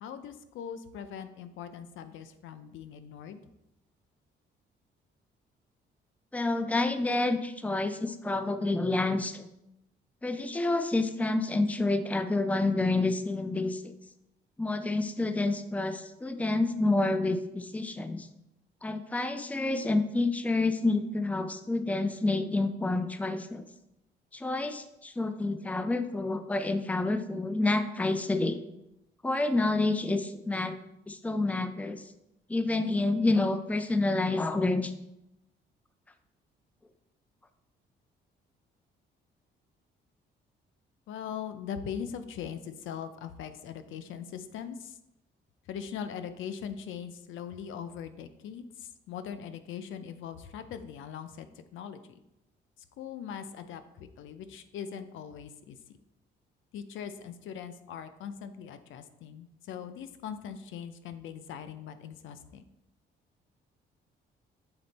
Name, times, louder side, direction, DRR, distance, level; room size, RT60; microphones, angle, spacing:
voice 1, 0.0-3.4 41.1-45.0 45.6-52.2 53.0-55.8 56.7-62.7, left 8 dB, 80° left, 11 dB, 0.6 m, -41 dB
voice 2, 6.3-9.4 10.2-13.9 14.6-18.3 18.8-23.6 24.3-28.6 29.2-30.8 31.1-32.0 32.5-34.9, left 2 dB, 5° left, 9 dB, 0.5 m, -28 dB
6.9 x 4.2 x 4.0 m, 0.86 s
cardioid pair, 90°, 20 cm